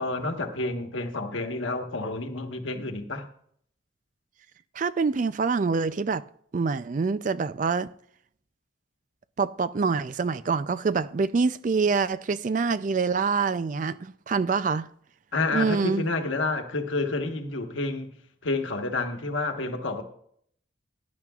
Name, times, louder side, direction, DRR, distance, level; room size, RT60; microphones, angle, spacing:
voice 1, 0.0-3.3 15.3-18.1 18.4-20.0, left 3 dB, 85° left, 1.3 m, -29 dB
voice 2, 4.8-6.2 6.5-7.9 9.4-14.9 15.5-16.0, right 4 dB, 40° right, 0.3 m, -25 dB
17.5 x 10.5 x 2.4 m
head